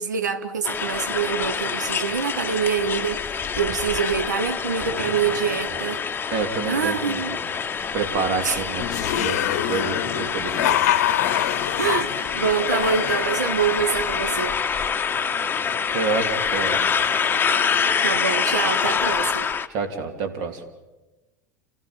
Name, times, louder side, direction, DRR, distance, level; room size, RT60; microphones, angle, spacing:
voice 1, 0.0-6.0 6.6-7.4 8.4-8.6 11.8-14.6 18.0-19.5, right 6 dB, 75° right, 1.2 m, -25 dB
sound 1, 0.6-19.7, left 6 dB, 20° left, 1.0 m, -26 dB
sound 2, 4.6-10.7, right 1 dB, 25° right, 6.0 m, -44 dB
voice 2, 6.3-7.2 7.9-8.8 9.1-10.8 15.9-16.8 19.7-20.6, right 4 dB, 50° right, 3.2 m, -27 dB
sound 3, 8.8-14.3, left 13 dB, 55° left, 0.9 m, -26 dB
30.0 x 15.0 x 8.9 m
figure-of-eight pair, 80°, 10 cm